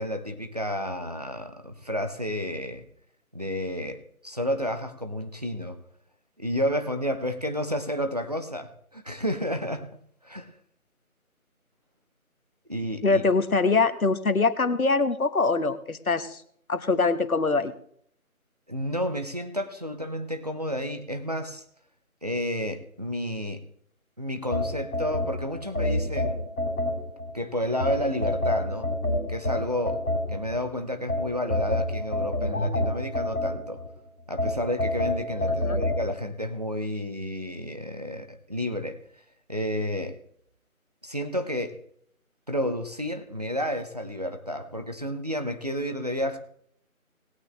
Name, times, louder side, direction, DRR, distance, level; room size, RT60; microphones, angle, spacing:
voice 1, 0.0-2.8 3.3-5.8 6.4-9.9 10.2-10.5 12.7-13.2 18.7-21.6 22.2-23.6 24.2-26.4 27.3-28.9 29.3-30.0 30.3-33.8 34.3-39.0 39.5-40.2 41.0-41.7 42.5-46.4, equal, 30° right, 7 dB, 0.9 m, -31 dB
voice 2, 13.0-16.4 16.7-17.7 35.6-35.8, left 3 dB, 75° left, 10 dB, 1.3 m, -23 dB
sound 1, 24.5-27.3 27.8-30.6 31.1-33.9 34.4-36.0, left 1 dB, ahead, 2.0 m, -27 dB
19.5 x 8.7 x 3.3 m, 0.65 s
figure-of-eight pair, 170°, 43 cm